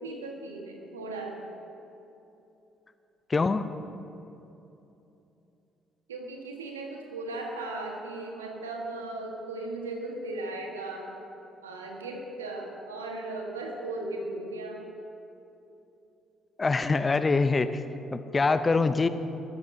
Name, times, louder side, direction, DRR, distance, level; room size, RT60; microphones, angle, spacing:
voice 1, 0.0-1.5 6.1-11.1 11.6-14.9, right 2 dB, 85° right, 1 dB, 1.4 m, -37 dB
voice 2, 3.3-3.7 16.6-17.8 18.1-19.1, left 3 dB, 30° left, 12 dB, 0.6 m, -24 dB
19.5 x 14.0 x 2.8 m, 2.9 s
hypercardioid pair, 45°, 0 cm